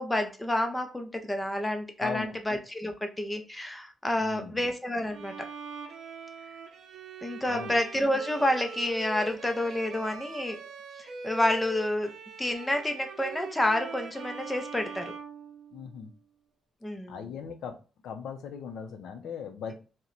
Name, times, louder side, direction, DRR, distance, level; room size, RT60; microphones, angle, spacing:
voice 1, 0.0-5.5 7.2-10.6 11.0-12.1 12.4-15.1 16.8-17.2, left 1 dB, 10° left, 5 dB, 0.4 m, -29 dB
voice 2, 2.0-2.4 4.2-4.7 7.5-7.8 15.7-16.1 17.1-17.8 18.0-19.7, left 7 dB, 85° left, 6 dB, 0.5 m, -38 dB
Bowed string instrument, 5.1-16.1, right 4 dB, 70° right, 0.5 m, -42 dB
2.9 x 2.1 x 3.8 m, 0.35 s
cardioid pair, 170°, 0 cm